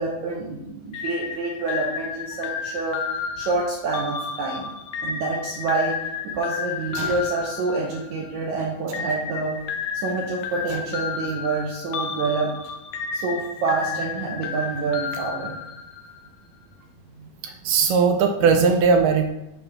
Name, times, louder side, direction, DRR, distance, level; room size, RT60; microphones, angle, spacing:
voice 1, 0.0-3.0 3.4-4.7 5.0-6.0 6.3-9.6 9.9-12.5 13.1-15.6 17.2-17.3, right 3 dB, 70° right, -2 dB, 1.8 m, -27 dB
sound 1, 0.9-8.4 8.9-16.2, left 6 dB, 80° left, 2.5 m, -32 dB
voice 2, 17.4-19.3, right 5 dB, 90° right, 5 dB, 1.8 m, -19 dB
6.9 x 3.1 x 6.0 m, 0.91 s
omnidirectional pair, 4.4 m